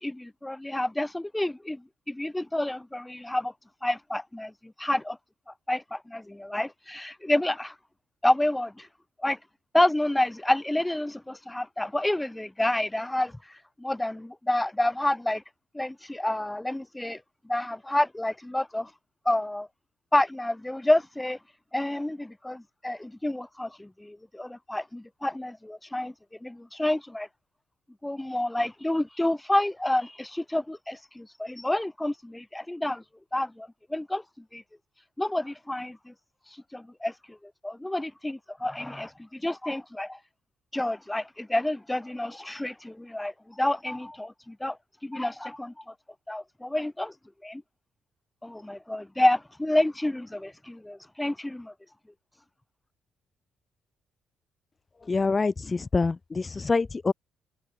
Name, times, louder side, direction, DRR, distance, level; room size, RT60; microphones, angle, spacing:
voice 1, 0.0-3.5 3.8-5.2 5.5-7.7 8.2-8.9 9.2-9.4 9.7-13.4 13.8-15.4 15.7-18.9 19.3-19.7 20.1-21.4 21.7-26.1 26.4-27.3 28.0-33.0 33.3-34.2 34.5-34.6 35.2-36.1 36.7-40.2 40.7-44.8 45.0-45.9 46.3-47.1 47.4-47.6 48.4-51.7, left 1 dB, 10° left, 5.7 m, -29 dB
voice 2, 55.1-57.1, left 4 dB, 30° left, 3.5 m, -26 dB
cardioid pair, 90°, 0 cm